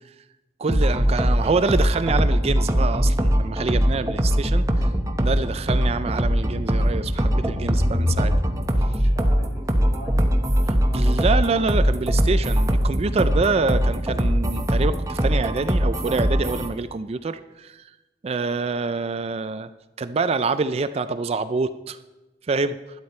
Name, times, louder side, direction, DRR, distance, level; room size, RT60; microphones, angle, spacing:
voice 1, 0.6-4.6 5.2-8.3 10.9-17.8 18.2-19.7 20.0-22.0 22.5-22.8, right 4 dB, 35° right, 12 dB, 0.4 m, -26 dB
sound 1, 0.7-16.7, equal, 20° right, 0.9 m, -21 dB
voice 2, 8.8-11.4, equal, 50° left, -1 dB, 4.1 m, -43 dB
12.0 x 10.5 x 4.3 m, 1.1 s
head